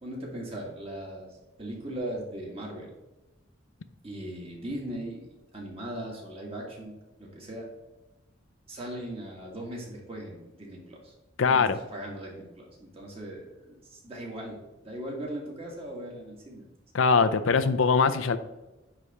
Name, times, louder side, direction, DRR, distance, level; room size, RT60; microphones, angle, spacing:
voice 1, 0.0-2.9 4.0-6.9 7.2-7.7 8.7-11.1 11.5-14.6 14.8-16.7, right 1 dB, 30° right, -2 dB, 1.8 m, -39 dB
voice 2, 11.4-11.8 16.9-18.4, left 5 dB, 90° left, 10 dB, 0.5 m, -22 dB
9.7 x 3.3 x 4.2 m, 1.1 s
head